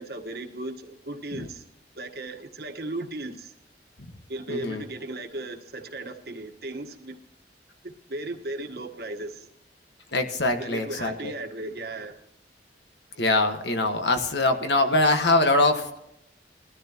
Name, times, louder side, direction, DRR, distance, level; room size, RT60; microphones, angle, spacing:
voice 1, 0.0-1.6 1.9-3.5 4.3-7.2 7.8-9.5 10.6-12.1, right 2 dB, 60° right, 4 dB, 1.4 m, -36 dB
voice 2, 4.5-4.8 10.1-11.3 13.2-16.0, left 2 dB, 75° left, 6 dB, 1.6 m, -23 dB
20.5 x 13.0 x 3.0 m, 0.83 s
head